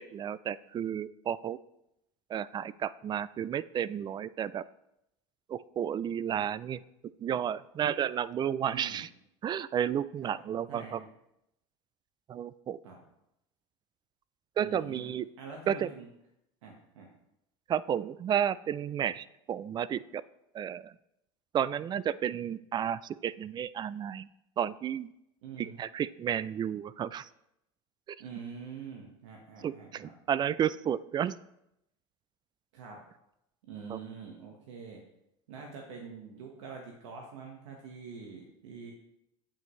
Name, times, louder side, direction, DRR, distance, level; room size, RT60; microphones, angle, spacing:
voice 1, 0.0-1.6 2.3-4.6 5.5-6.8 7.2-9.1 9.4-11.0 12.3-12.8 14.6-15.3 15.7-15.9 17.7-20.2 20.5-20.9 21.5-24.3 24.6-25.1 25.6-27.3 29.6-31.4 33.9-34.0, right 9 dB, 30° right, 19 dB, 0.3 m, -32 dB
voice 2, 8.7-9.0 10.2-10.4 10.7-11.1 12.8-13.0 14.6-16.1 16.6-17.1 25.4-25.8 28.2-30.1 32.7-33.0 33.7-35.0 35.5-38.9, right 5 dB, 80° right, 0 dB, 1.4 m, -45 dB
8.8 x 8.3 x 3.2 m, 0.83 s
supercardioid pair, 100°, 15 cm